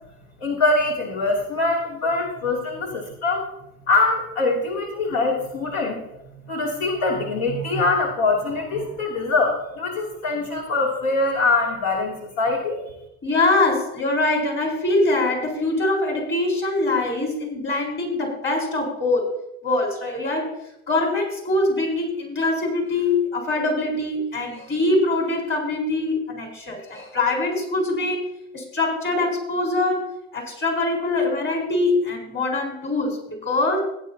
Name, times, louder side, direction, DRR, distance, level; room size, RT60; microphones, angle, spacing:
voice 1, 0.4-3.4 3.9-6.0 6.4-12.8, left 3 dB, 65° left, -2 dB, 3.0 m, -23 dB
voice 2, 13.2-20.6 20.9-28.2 28.5-33.8, left 2 dB, 30° left, 0 dB, 4.5 m, -23 dB
16.5 x 9.3 x 2.9 m, 0.83 s
supercardioid pair, 110°, 40 cm